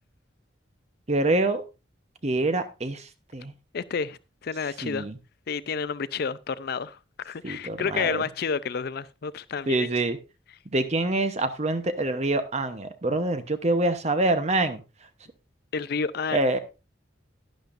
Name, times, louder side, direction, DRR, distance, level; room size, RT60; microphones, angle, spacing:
voice 1, 1.1-1.6 2.2-3.5 4.8-5.2 7.4-8.2 9.7-10.2 10.7-14.8 16.3-16.6, right 2 dB, 35° right, 0.9 m, -25 dB
voice 2, 3.7-5.1 5.5-9.9 15.7-16.5, left 5 dB, 55° left, 0.4 m, -30 dB
11.5 x 10.5 x 2.6 m
head